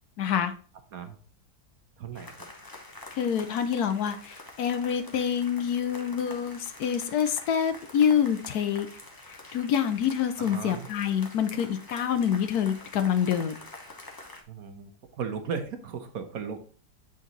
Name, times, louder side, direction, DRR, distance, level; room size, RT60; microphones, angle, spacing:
voice 1, 0.2-0.5 3.1-8.9 9.5-13.6, left 8 dB, 70° left, 9 dB, 1.2 m, -26 dB
voice 2, 2.0-2.3 10.4-10.9 14.5-14.9 15.2-16.6, right 6 dB, 65° right, 7 dB, 1.3 m, -36 dB
sound 1, 2.1-14.4, left 2 dB, 20° left, 0.7 m, -46 dB
7.6 x 4.0 x 4.0 m, 0.42 s
omnidirectional pair, 1.8 m